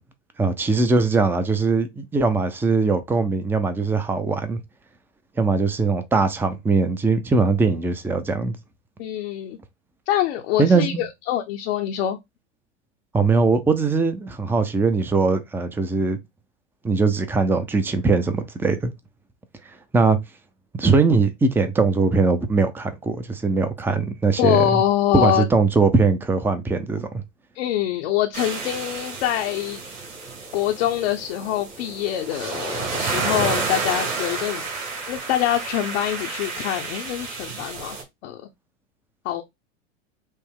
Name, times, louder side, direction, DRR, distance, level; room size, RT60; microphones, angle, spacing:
voice 1, 0.4-4.6 5.4-8.6 10.6-11.0 13.1-16.2 16.8-18.9 19.9-20.2 20.8-24.7 25.1-27.1, right 4 dB, 5° right, 0.5 m, -21 dB
voice 2, 9.0-9.6 10.1-12.2 24.4-25.5 27.5-29.8 30.5-34.7 35.1-38.0 38.2-38.4 39.2-39.4, left 11 dB, 60° left, 0.7 m, -24 dB
sound 1, 28.3-38.0, right 4 dB, 45° right, 2.1 m, -30 dB
5.4 x 2.0 x 3.6 m
hypercardioid pair, 90°, 37 cm